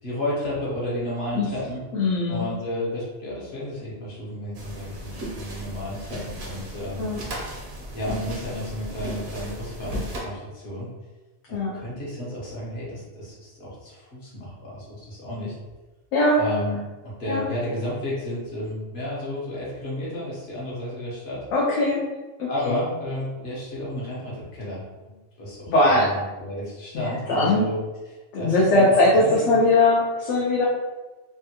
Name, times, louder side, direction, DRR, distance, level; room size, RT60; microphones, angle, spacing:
voice 1, 0.0-1.8 2.3-7.2 7.9-10.9 11.7-15.6 16.4-21.4 22.5-27.8 28.3-29.5, left 1 dB, 60° left, -6 dB, 1.3 m, -32 dB
voice 2, 1.9-2.5 7.0-7.2 11.5-11.7 16.1-16.4 17.3-17.4 21.5-22.0 22.4-22.8 25.7-26.1 26.9-27.6 28.3-30.7, left 2 dB, 75° left, -5 dB, 0.9 m, -20 dB
sound 1, 4.5-10.2, right 1 dB, 65° right, 1.0 m, -35 dB
3.4 x 2.2 x 2.8 m, 1.2 s
omnidirectional pair, 1.2 m